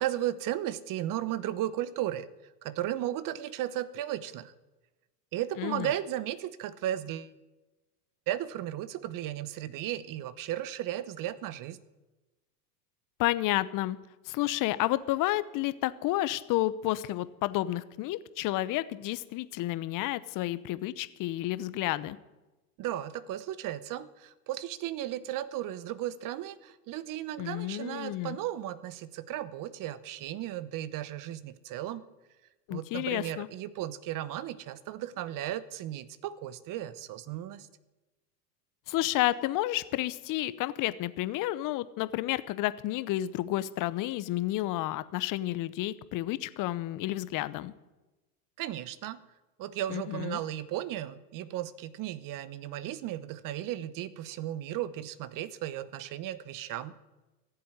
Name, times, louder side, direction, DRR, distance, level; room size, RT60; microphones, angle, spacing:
voice 1, 0.0-2.3 2.6-4.5 5.3-7.3 8.3-11.8 22.8-32.0 32.7-37.7 48.6-49.2 49.6-56.9, right 12 dB, 40° right, 17 dB, 1.0 m, -35 dB
voice 2, 5.6-5.9 13.2-14.0 14.3-22.2 27.4-28.4 32.7-33.5 38.9-47.7 49.9-50.4, left 16 dB, 40° left, 16 dB, 0.9 m, -31 dB
14.5 x 7.7 x 9.6 m, 1.1 s
hypercardioid pair, 105°, 49 cm